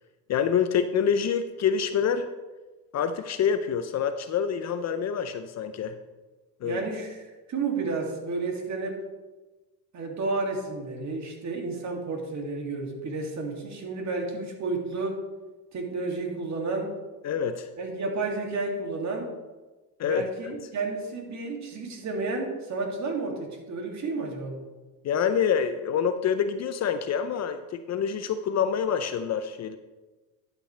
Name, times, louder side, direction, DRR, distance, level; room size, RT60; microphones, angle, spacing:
voice 1, 0.3-2.3 2.9-6.0 6.6-6.8 17.2-17.7 20.0-20.2 25.0-29.8, left 7 dB, 40° left, 10 dB, 0.6 m, -26 dB
voice 2, 6.6-9.0 9.9-15.2 15.7-16.9 17.8-19.3 20.0-24.7, right 3 dB, 40° right, 1 dB, 2.6 m, -31 dB
11.5 x 8.4 x 3.3 m, 1.2 s
supercardioid pair, 95°, 42 cm